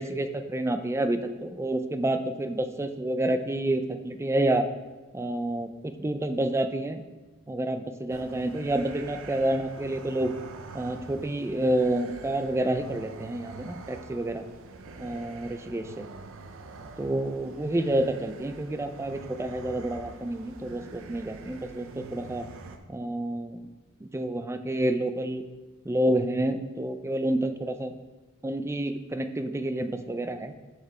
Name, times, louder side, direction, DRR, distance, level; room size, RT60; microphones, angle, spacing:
voice 1, 0.0-4.7 5.1-7.0 7.5-10.3 10.7-14.4 15.0-16.0 17.0-22.5 22.9-23.6 24.0-25.4 25.8-27.9 28.4-30.5, right 1 dB, 10° right, 8 dB, 0.4 m, -29 dB
sound 1, 8.1-22.8, right 3 dB, 60° right, 0.6 m, -45 dB
6.3 x 6.0 x 4.4 m, 1.2 s
head